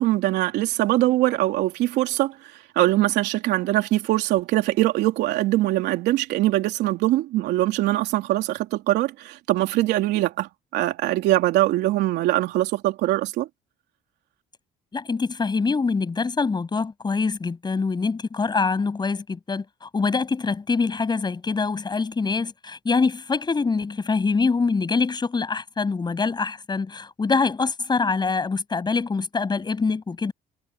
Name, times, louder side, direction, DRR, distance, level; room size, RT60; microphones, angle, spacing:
voice 1, 0.0-13.5, right 16 dB, 85° right, 3.4 m, -22 dB
voice 2, 14.9-30.3, left 4 dB, 25° left, 7.4 m, -24 dB
cardioid pair, 110°, 17 cm